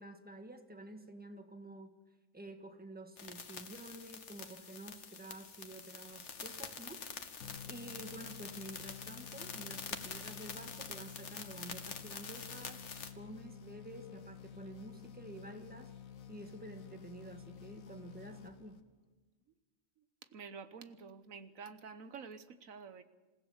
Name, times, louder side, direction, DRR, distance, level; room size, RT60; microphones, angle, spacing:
voice 1, 0.0-2.0 2.3-7.0 7.7-12.8 13.1-15.9 16.3-18.8, right 1 dB, 5° right, 6 dB, 1.6 m, -50 dB
sound 1, 3.2-13.1, left 5 dB, 60° left, 1.6 m, -46 dB
sound 2, 7.4-19.1, left 8 dB, 85° left, 1.6 m, -52 dB
voice 2, 20.3-23.0, right 5 dB, 80° right, 11 dB, 1.4 m, -49 dB
28.0 x 16.0 x 7.2 m, 1.3 s
omnidirectional pair, 1.4 m